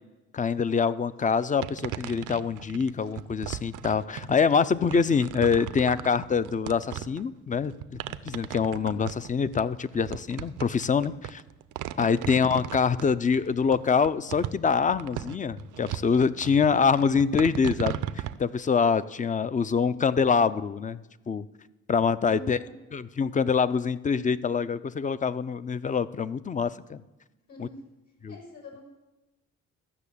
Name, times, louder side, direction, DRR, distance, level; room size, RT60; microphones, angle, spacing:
voice 1, 0.3-8.0 8.2-11.4 12.0-18.0 18.4-21.5 21.9-22.6 22.9-27.0 27.6-27.7 28.2-28.3, left 6 dB, 25° left, 16 dB, 0.5 m, -25 dB
sound 1, 1.6-18.4, right 12 dB, 80° right, 0.6 m, -37 dB
voice 2, 8.7-9.2 12.1-12.5 22.2-22.7 27.5-27.8 28.3-28.8, equal, 65° left, 0 dB, 5.4 m, -45 dB
13.5 x 6.2 x 8.4 m, 1.1 s
cardioid pair, 90°, 30 cm